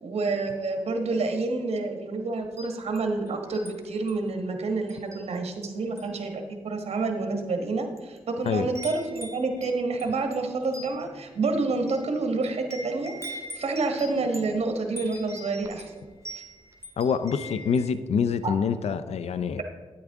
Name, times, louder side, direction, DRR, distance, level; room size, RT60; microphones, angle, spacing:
voice 1, 0.0-16.4 18.4-18.6, right 3 dB, 70° right, 4 dB, 1.3 m, -29 dB
Wind chime, 2.4-3.7 4.1-4.3 4.9-5.6 5.9-6.2 7.0-7.1 7.7-8.2 8.4-17.9, equal, 25° right, 1.6 m, -43 dB
voice 2, 17.0-19.6, left 6 dB, 75° left, 13 dB, 0.5 m, -26 dB
9.4 x 8.6 x 3.5 m, 1.3 s
cardioid pair, 65°, 11 cm